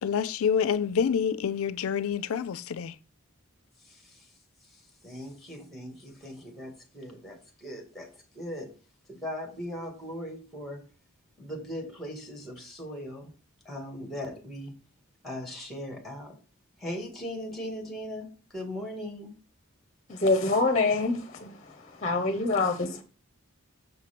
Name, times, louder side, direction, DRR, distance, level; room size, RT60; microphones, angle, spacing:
voice 1, 0.0-3.0, left 7 dB, 70° left, 0.4 m, -27 dB
voice 2, 3.8-4.3 4.6-8.7 9.1-10.8 11.4-13.3 13.7-14.7 15.2-16.4 16.8-19.3, equal, ahead, 1.9 m, -39 dB
voice 3, 20.1-21.5 22.0-23.0, left 3 dB, 35° left, 0.8 m, -25 dB
6.6 x 4.5 x 5.9 m
head